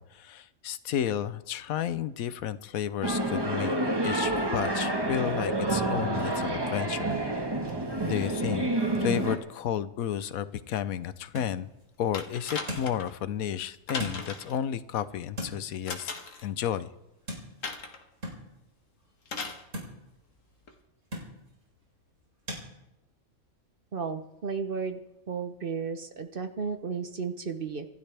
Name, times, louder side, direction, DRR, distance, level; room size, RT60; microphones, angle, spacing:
voice 1, 0.0-3.7 4.0-7.2 8.0-8.7 9.0-11.7 12.0-16.1 16.4-16.9, left 10 dB, 80° left, 14 dB, 1.2 m, -32 dB
sound 1, 3.0-9.4, right 1 dB, 15° right, 1.5 m, -28 dB
axe on wood, 10.3-22.7, equal, 60° right, 4.3 m, -44 dB
sound 2, 12.1-13.1 13.9-14.6 15.9-16.5 17.6-18.0 19.3-19.6 20.7-20.8, left 4 dB, 65° left, 1.8 m, -37 dB
voice 2, 23.9-25.0 25.3-27.9, right 5 dB, 45° right, 8 dB, 1.0 m, -33 dB
26.0 x 12.5 x 3.4 m, 0.92 s
omnidirectional pair, 1.5 m